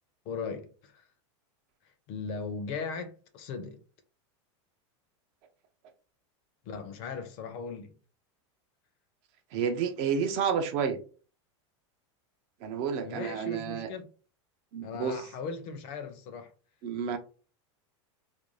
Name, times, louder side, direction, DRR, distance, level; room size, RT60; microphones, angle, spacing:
voice 1, 0.3-1.1 2.1-3.8 6.7-7.9 13.0-14.1 14.8-16.5, left 5 dB, 40° left, 0.5 m, -38 dB
voice 2, 9.5-11.0 12.6-13.9 14.7-15.2 16.8-17.2, right 7 dB, 35° right, 0.3 m, -30 dB
2.5 x 2.2 x 3.0 m
supercardioid pair, 165°, 15 cm